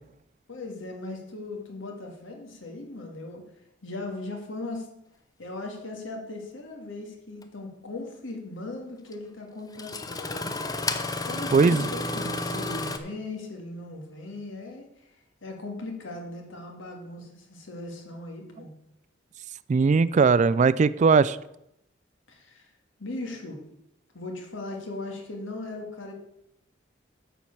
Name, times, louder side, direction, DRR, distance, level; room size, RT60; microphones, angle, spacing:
voice 1, 0.5-3.4 3.8-4.9 5.4-10.9 11.3-15.1 15.4-18.7 22.3-22.7 23.0-23.6 24.1-26.1, left 2 dB, 80° left, 2 dB, 2.1 m, -38 dB
Engine starting, 7.4-7.5 9.1-9.2 9.7-13.0, left 2 dB, 20° left, 0.7 m, -31 dB
voice 2, 11.5-11.9 19.7-21.4, right 5 dB, 40° right, 17 dB, 0.3 m, -19 dB
9.7 x 4.6 x 7.2 m, 0.81 s
head